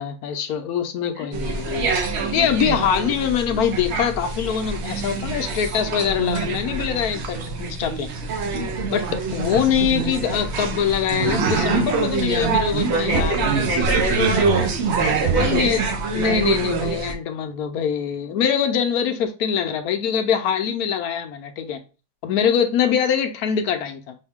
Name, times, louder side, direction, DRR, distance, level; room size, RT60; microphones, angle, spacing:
voice 1, 0.0-1.9 2.3-8.1 8.9-13.5 15.4-15.8 16.1-21.8 22.2-24.2, left 8 dB, 70° left, 1.0 m, -23 dB
voice 2, 1.2-1.6 12.9-14.7 15.0-15.6, right 1 dB, 80° right, 2.3 m, -26 dB
sound 1, 1.3-17.1, right 4 dB, 55° right, 0.8 m, -24 dB
5.5 x 2.6 x 3.5 m
omnidirectional pair, 1.7 m